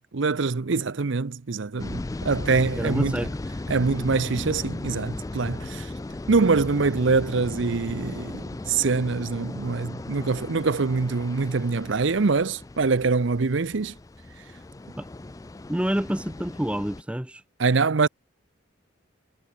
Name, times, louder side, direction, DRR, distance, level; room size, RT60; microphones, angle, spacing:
voice 1, 0.1-3.2 3.7-5.9 6.3-13.9 17.6-18.1, right 4 dB, 65° right, 0.7 m, -24 dB
sound 1, 1.8-17.0, left 2 dB, 15° left, 0.3 m, -36 dB
voice 2, 2.8-3.4 15.0-15.1 15.7-17.4, equal, 5° right, 0.8 m, -28 dB
head